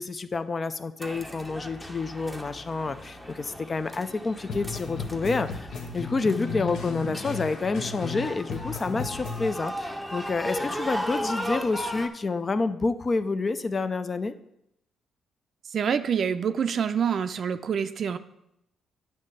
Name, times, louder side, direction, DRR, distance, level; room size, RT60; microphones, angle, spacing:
voice 1, 0.0-14.3, left 3 dB, 35° left, 11 dB, 0.4 m, -29 dB
sound 1, 1.0-12.1, equal, 5° left, 0.8 m, -36 dB
sound 2, 4.5-8.2 8.5-9.5, left 5 dB, 75° left, 1.0 m, -35 dB
voice 2, 15.7-18.2, right 7 dB, 55° right, 11 dB, 0.4 m, -26 dB
9.3 x 3.2 x 6.6 m, 0.81 s
cardioid pair, 90°, 0 cm